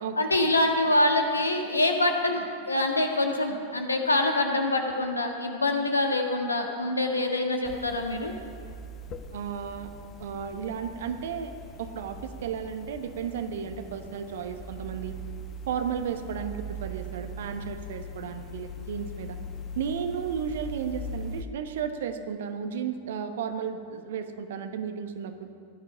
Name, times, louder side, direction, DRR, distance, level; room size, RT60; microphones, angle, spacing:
voice 1, 0.2-8.3, left 2 dB, 80° left, 3 dB, 1.7 m, -25 dB
sound 1, 7.7-21.4, equal, 30° left, 1.1 m, -41 dB
voice 2, 9.3-9.9 10.2-11.5 11.8-15.1 15.7-19.4 19.7-25.5, right 7 dB, 60° right, 8 dB, 1.2 m, -33 dB
16.5 x 11.5 x 5.8 m, 2.4 s
figure-of-eight pair, 90°, 0 cm